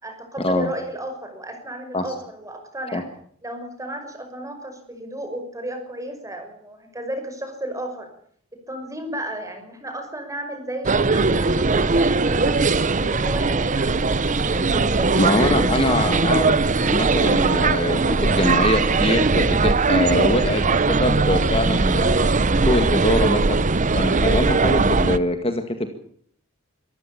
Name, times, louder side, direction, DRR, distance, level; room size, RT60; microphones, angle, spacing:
voice 1, 0.0-3.0 3.4-8.1 8.7-12.6 12.9-16.5, right 1 dB, 15° right, 6 dB, 5.8 m, -33 dB
sound 1, 10.8-25.2, right 3 dB, 35° right, 0.9 m, -20 dB
voice 2, 15.2-22.2 22.6-23.4 23.9-25.9, left 1 dB, 25° left, 7 dB, 1.9 m, -23 dB
24.5 x 14.5 x 8.5 m, 0.62 s
head